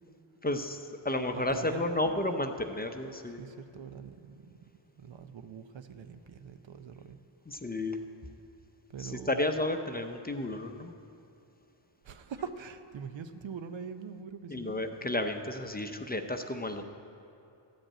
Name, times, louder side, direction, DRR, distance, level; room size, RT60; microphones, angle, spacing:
voice 1, 0.4-0.8 1.0-3.4 7.5-8.0 9.0-10.9 14.5-16.8, left 1 dB, 20° left, 6 dB, 0.6 m, -32 dB
voice 2, 1.3-2.3 3.4-4.6 5.0-7.2 8.9-9.4 12.0-14.8, right 6 dB, 65° right, 9 dB, 0.7 m, -43 dB
13.5 x 5.2 x 8.7 m, 2.7 s
cardioid pair, 75°, 49 cm